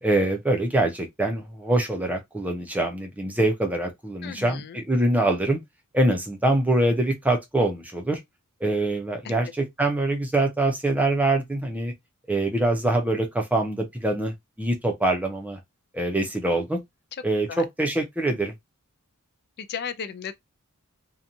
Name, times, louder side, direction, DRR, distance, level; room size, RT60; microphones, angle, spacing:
voice 1, 0.0-5.6 5.9-8.2 8.6-11.9 12.3-15.6 15.9-16.8 17.2-18.5, right 2 dB, 5° right, 0.5 m, -24 dB
voice 2, 4.2-4.8 9.2-9.3 17.5-17.6 19.6-20.4, left 7 dB, 45° left, 0.4 m, -35 dB
2.9 x 2.2 x 2.6 m
head